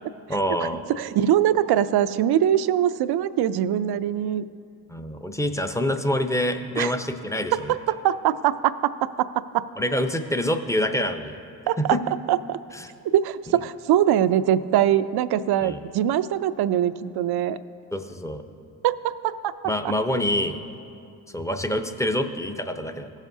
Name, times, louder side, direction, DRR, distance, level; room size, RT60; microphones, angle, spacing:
voice 1, 0.3-0.8 4.9-7.7 9.8-11.4 11.8-12.0 12.7-12.9 15.6-15.8 17.9-18.4 19.6-20.6 21.3-23.1, left 1 dB, 5° left, 7 dB, 0.7 m, -26 dB
voice 2, 0.9-4.4 6.8-6.9 7.7-7.8 8.0-9.6 11.7-11.8 12.3-12.6 13.1-17.6 18.8-19.5, right 11 dB, 55° right, 14 dB, 0.5 m, -22 dB
16.5 x 7.3 x 2.7 m, 2.6 s
supercardioid pair, 55°, 47 cm